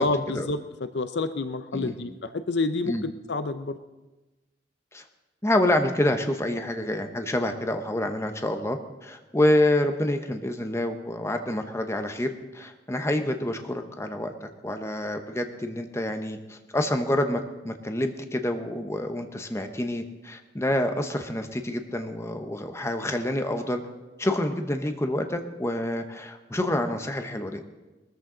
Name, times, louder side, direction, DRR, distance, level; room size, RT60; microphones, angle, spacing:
voice 1, 0.0-3.8, left 3 dB, 70° left, 11 dB, 0.6 m, -29 dB
voice 2, 5.4-23.8 24.2-27.6, left 1 dB, 15° left, 6 dB, 0.9 m, -27 dB
20.0 x 13.5 x 3.9 m, 1.1 s
head